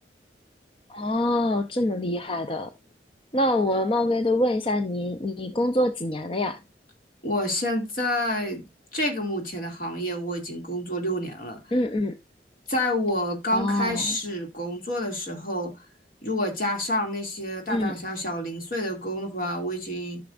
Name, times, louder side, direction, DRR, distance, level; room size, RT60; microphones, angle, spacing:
voice 1, 0.9-2.7 3.3-6.6 11.7-12.2 13.5-14.2 17.7-17.9, left 1 dB, 30° left, 0.6 m, -25 dB
voice 2, 7.2-8.6 8.9-11.6 12.7-15.7 16.2-20.2, left 1 dB, 50° left, 2.5 m, -28 dB
14.0 x 6.0 x 2.5 m
head